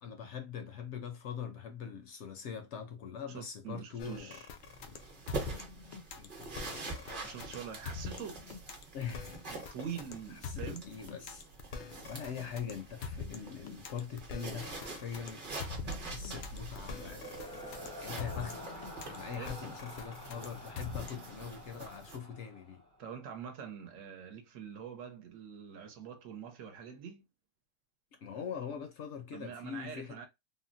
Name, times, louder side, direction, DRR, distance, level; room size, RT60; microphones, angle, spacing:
voice 1, 0.0-4.4 6.2-7.2 8.9-9.4 10.4-15.5 15.7-22.8 28.1-30.3, left 7 dB, 65° left, 0.8 m, -43 dB
voice 2, 3.3-4.5 7.2-8.4 9.5-10.8 19.4-19.5 23.0-27.3 29.3-30.3, right 7 dB, 70° right, 1.0 m, -44 dB
sound 1, 4.0-21.4, left 5 dB, 90° left, 0.4 m, -45 dB
sound 2, 4.6-22.2, right 3 dB, 40° right, 1.0 m, -46 dB
sound 3, 15.7-23.1, equal, 5° left, 0.5 m, -47 dB
3.6 x 2.0 x 2.5 m
omnidirectional pair, 1.4 m